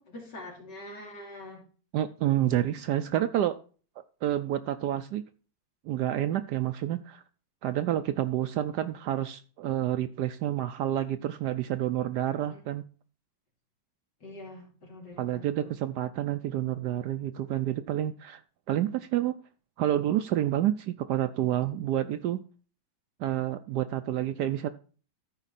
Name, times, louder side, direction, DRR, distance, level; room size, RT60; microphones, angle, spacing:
voice 1, 0.0-1.6 2.8-3.1 12.4-12.6 14.2-15.7, left 1 dB, 55° left, -1 dB, 3.4 m, -45 dB
voice 2, 1.9-3.6 4.2-5.2 5.9-7.2 7.6-12.8 15.2-18.4 18.7-19.3 19.8-22.4 23.2-24.7, right 12 dB, 75° right, 11 dB, 1.0 m, -29 dB
13.5 x 4.9 x 4.1 m, 0.39 s
omnidirectional pair, 2.2 m